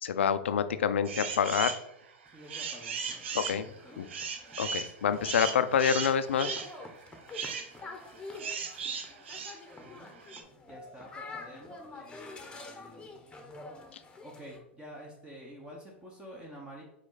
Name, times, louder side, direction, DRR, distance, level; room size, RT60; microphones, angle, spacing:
voice 1, 0.0-1.8 3.3-3.7 4.0-4.1 4.6-6.6, left 7 dB, 80° left, 12 dB, 0.5 m, -27 dB
sound 1, 1.0-1.8 2.3-10.4, right 6 dB, 75° right, 0.8 m, -37 dB
sound 2, 2.3-14.6, left 3 dB, 15° left, 1.0 m, -48 dB
voice 2, 2.3-3.2 3.8-4.2 9.8-10.1 10.6-13.2 14.2-16.8, equal, 15° right, -2 dB, 1.2 m, -49 dB
4.9 x 4.8 x 4.0 m, 0.80 s
hypercardioid pair, 100°, 6 cm